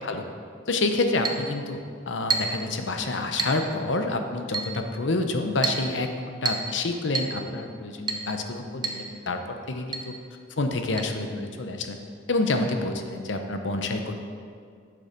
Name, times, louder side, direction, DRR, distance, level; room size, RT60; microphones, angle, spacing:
voice 1, 0.7-1.8 2.1-10.1 10.6-12.0 12.3-14.1, left 2 dB, 80° left, 6 dB, 0.8 m, -28 dB
Chink clink, 1.2-1.5 2.3-2.6 3.4-3.6 4.5-4.8 5.6-5.9 6.5-6.7 7.1-7.4 8.1-8.3 8.8-9.0 9.3-9.4 9.9-10.1 11.0-11.1, right 4 dB, 25° right, 0.6 m, -28 dB
8.5 x 6.9 x 5.1 m, 2.2 s
head